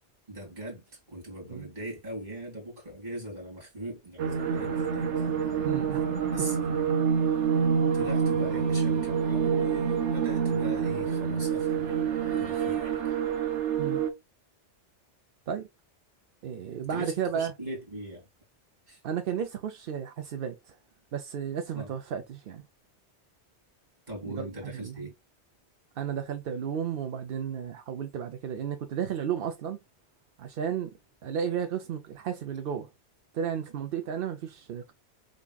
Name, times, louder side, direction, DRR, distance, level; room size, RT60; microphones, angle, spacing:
voice 1, 0.3-5.3 6.3-6.6 7.9-13.2 16.9-18.3 18.9-19.0 21.7-21.9 24.1-25.1, right 1 dB, 40° right, 2.4 m, -40 dB
sound 1, 4.2-14.1, right 7 dB, 85° right, 1.1 m, -27 dB
voice 2, 5.6-6.0 13.8-14.0 15.5-15.7 16.4-17.5 19.0-20.7 21.1-22.6 24.2-25.1 26.0-29.8 30.4-30.9 31.2-32.9 33.3-34.9, right 8 dB, 60° right, 0.7 m, -33 dB
5.1 x 3.5 x 2.3 m
omnidirectional pair, 1.2 m